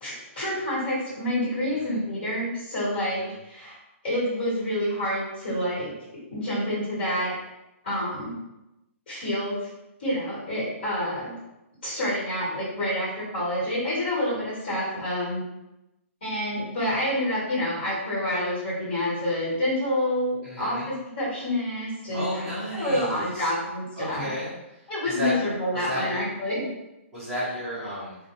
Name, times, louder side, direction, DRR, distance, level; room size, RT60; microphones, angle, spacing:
voice 1, 0.0-3.8 4.0-5.9 6.3-7.4 7.8-8.4 9.1-9.6 10.0-11.3 11.8-15.4 16.2-22.4 22.7-24.3 24.9-26.7, left 1 dB, 40° left, -8 dB, 1.3 m, -28 dB
voice 2, 20.4-20.9 22.1-23.5 24.0-25.4 25.7-26.2 27.1-28.2, equal, 5° left, -14 dB, 0.8 m, -33 dB
2.3 x 2.2 x 2.9 m, 0.95 s
hypercardioid pair, 175°, 7 cm